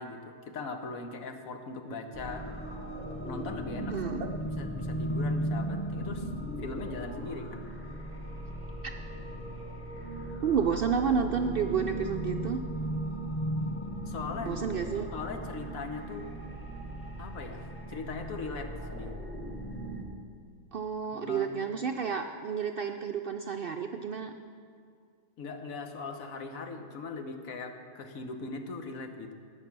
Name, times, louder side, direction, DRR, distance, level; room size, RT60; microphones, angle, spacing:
voice 1, 0.0-2.4 3.2-4.0 4.4-6.3 6.6-7.6 14.1-14.5 15.1-16.3 17.2-19.2 21.1-21.5 25.4-29.3, left 4 dB, 80° left, 6 dB, 1.4 m, -40 dB
sound 1, 2.1-20.0, right 1 dB, 10° left, 1.2 m, -36 dB
voice 2, 3.9-4.4 10.4-12.6 14.4-15.1 20.7-24.3, right 6 dB, 65° right, 5 dB, 0.5 m, -30 dB
19.0 x 6.7 x 6.0 m, 2.2 s
omnidirectional pair, 1.4 m